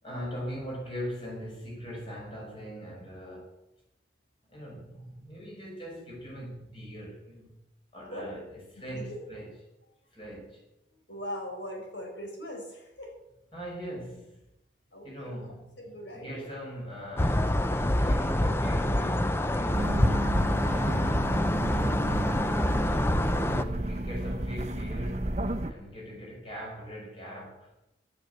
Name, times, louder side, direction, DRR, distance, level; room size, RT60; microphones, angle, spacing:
voice 1, 0.0-3.6 4.5-7.6 7.9-9.5 10.1-10.6 13.5-14.4 15.0-15.7 16.1-20.3 22.7-27.7, equal, 30° left, 5.5 m, -41 dB
voice 2, 8.8-9.2 11.1-13.1 14.9-15.5 15.8-16.6 21.6-22.2, equal, 80° left, 4.6 m, -41 dB
sound 1, 17.2-23.6, left 1 dB, 15° left, 0.5 m, -26 dB
snowmobile pass by medium speed semidistant, 19.7-25.7, right 1 dB, 35° right, 0.8 m, -31 dB
12.5 x 9.8 x 8.1 m
head